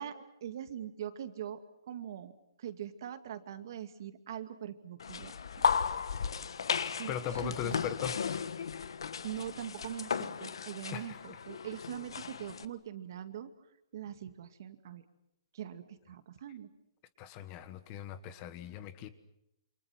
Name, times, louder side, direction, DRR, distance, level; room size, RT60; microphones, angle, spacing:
voice 1, 0.0-1.6 1.9-2.3 2.6-5.3 5.6-5.7 7.0-7.1 7.4-7.8 9.2-13.5 13.9-15.0 15.5-16.7, right 10 dB, 50° right, 9 dB, 2.3 m, -42 dB
sound 1, 5.0-12.7, left 6 dB, 75° left, 1.5 m, -35 dB
voice 2, 7.1-8.2 10.9-11.4 17.2-19.1, left 9 dB, 25° left, 13 dB, 1.4 m, -39 dB
28.5 x 27.0 x 6.0 m, 0.81 s
hypercardioid pair, 165°, 3 cm